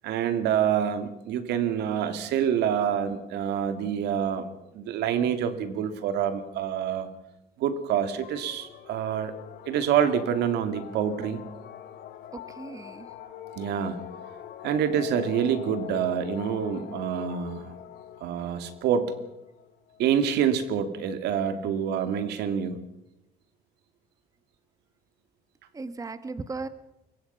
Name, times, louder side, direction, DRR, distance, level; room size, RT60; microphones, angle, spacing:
voice 1, 0.0-4.5 4.7-7.1 7.6-9.3 9.7-11.4 13.6-14.0 14.6-17.7 18.2-19.1 20.0-22.8, right 8 dB, 80° right, 9 dB, 2.5 m, -27 dB
sound 1, 8.2-20.0, left 10 dB, 70° left, 2.0 m, -43 dB
voice 2, 12.3-13.1 25.7-26.7, right 3 dB, 20° right, 12 dB, 1.2 m, -37 dB
24.5 x 22.5 x 5.7 m, 0.89 s
cardioid pair, 110°, 17 cm